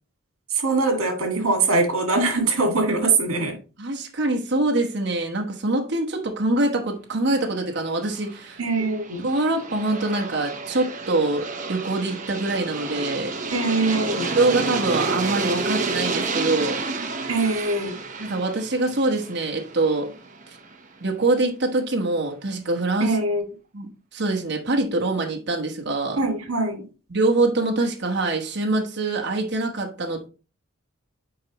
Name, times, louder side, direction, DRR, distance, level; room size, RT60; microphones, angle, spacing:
voice 1, 0.5-3.6 8.6-9.3 13.5-14.3 17.3-18.0 23.0-23.4 26.2-26.9, right 3 dB, 80° right, 2.1 m, -22 dB
voice 2, 3.8-8.6 9.2-13.3 14.4-16.8 18.2-20.1 21.0-23.2 23.7-26.2 27.1-30.3, right 2 dB, 55° right, 1.2 m, -24 dB
Aircraft, 7.9-20.7, right 3 dB, 35° right, 0.9 m, -30 dB
8.4 x 4.7 x 3.0 m
head